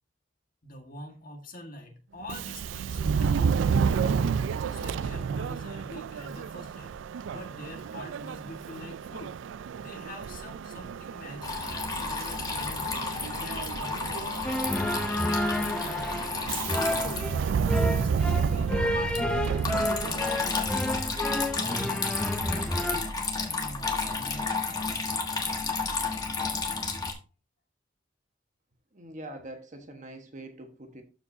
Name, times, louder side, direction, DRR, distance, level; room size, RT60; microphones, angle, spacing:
voice 1, 0.6-4.4 4.7-7.0 7.3-9.4 9.8-13.1 13.4-14.7 15.1-16.3 16.6-19.3 19.6-21.2 21.4-22.1 22.4-23.1 23.4-24.7, left 1 dB, 45° left, 1.6 m, -44 dB
Subway metro underground, 2.2-20.6, right 6 dB, 70° right, 0.3 m, -31 dB
Water tap faucet / Trickle dribble, 11.4-27.1, left 4 dB, 20° left, 1.3 m, -32 dB
sound 1, 14.4-23.0, left 1 dB, 5° left, 0.6 m, -30 dB
voice 2, 28.9-31.0, right 1 dB, 40° right, 1.3 m, -43 dB
12.5 x 4.9 x 2.7 m
head